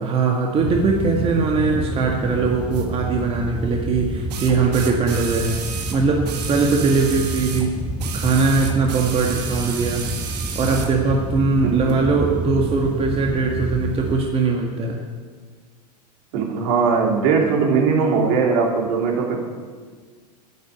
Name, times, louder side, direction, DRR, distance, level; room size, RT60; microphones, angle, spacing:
voice 1, 0.0-5.5 5.9-7.7 8.1-10.0 10.6-15.0, right 4 dB, 25° right, 0 dB, 1.9 m, -20 dB
sound 1, 0.6-14.3, right 2 dB, 5° right, 0.7 m, -28 dB
sound 2, 2.7-2.9 4.3-7.7 8.0-11.0 11.9-12.0, right 7 dB, 75° right, 2.1 m, -32 dB
voice 2, 11.6-12.0 16.3-19.4, right 5 dB, 55° right, 0 dB, 3.5 m, -20 dB
11.0 x 11.0 x 8.7 m, 1.5 s
hypercardioid pair, 105°, 21 cm